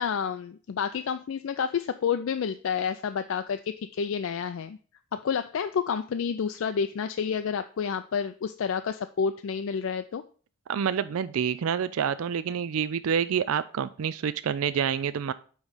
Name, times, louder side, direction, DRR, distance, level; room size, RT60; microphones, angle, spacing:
voice 1, 0.0-4.8 5.1-10.2, left 6 dB, 70° left, 9 dB, 0.3 m, -29 dB
voice 2, 10.7-15.3, right 7 dB, 80° right, 14 dB, 0.4 m, -27 dB
8.7 x 3.1 x 5.5 m, 0.41 s
head